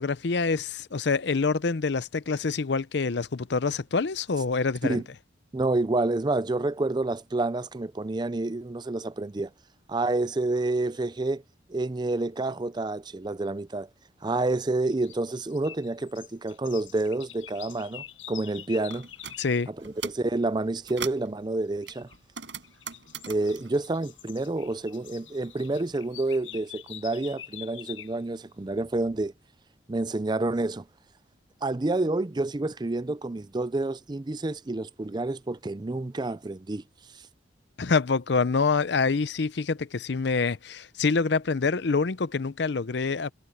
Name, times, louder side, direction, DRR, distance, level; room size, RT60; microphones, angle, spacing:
voice 1, 0.0-5.0 19.4-19.7 37.8-43.3, left 4 dB, 60° left, 0.6 m, -26 dB
voice 2, 5.5-9.5 9.9-11.4 11.7-13.9 14.2-19.1 19.7-22.1 23.3-29.3 29.9-30.8 31.6-36.8 37.1-37.2, right 2 dB, 20° right, 0.4 m, -29 dB
sound 1, 14.8-19.6 21.8-22.2 22.6-28.2, left 12 dB, 90° left, 6.1 m, -46 dB
sound 2, 18.9-19.4 19.8-20.3 20.7-21.3 21.9-24.8 25.1-26.2, right 7 dB, 65° right, 6.4 m, -41 dB
head